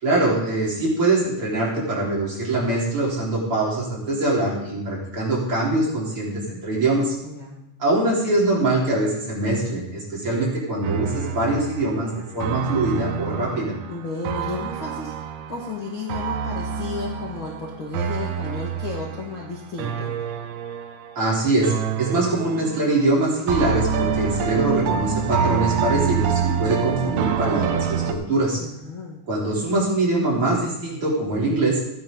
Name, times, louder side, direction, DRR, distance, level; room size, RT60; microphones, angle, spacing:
voice 1, 0.0-7.1 7.8-13.7 21.2-21.7 22.0-28.6 29.3-31.8, right 2 dB, 30° right, -6 dB, 4.2 m, -23 dB
voice 2, 7.2-7.6 13.9-15.2 15.5-20.1 28.6-29.2, left 4 dB, 55° left, -2 dB, 1.4 m, -33 dB
sound 1, 10.8-21.3 21.6-23.1 23.5-28.1, right 7 dB, 90° right, 3.2 m, -27 dB
15.0 x 10.5 x 3.9 m, 0.87 s
omnidirectional pair, 5.2 m